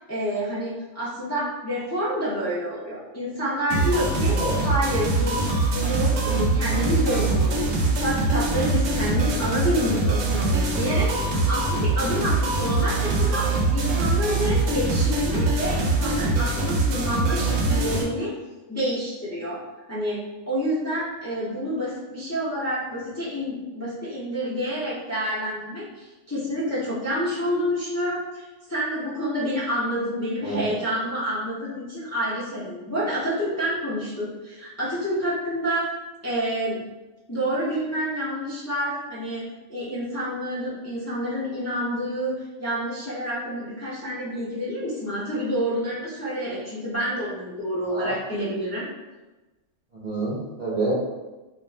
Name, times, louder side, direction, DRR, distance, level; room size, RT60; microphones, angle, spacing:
voice 1, 0.0-5.4 5.7-18.3 18.7-19.6 19.9-20.2 20.5-35.9 36.2-36.8 37.3-39.4 39.7-48.8, equal, 20° left, -9 dB, 0.4 m, -28 dB
sound 1, 3.7-18.0, right 3 dB, 90° right, 1.0 m, -23 dB
voice 2, 30.4-30.8 47.9-48.1 49.9-50.9, right 2 dB, 45° right, -7 dB, 0.6 m, -28 dB
2.4 x 2.3 x 3.2 m, 1.1 s
omnidirectional pair, 1.3 m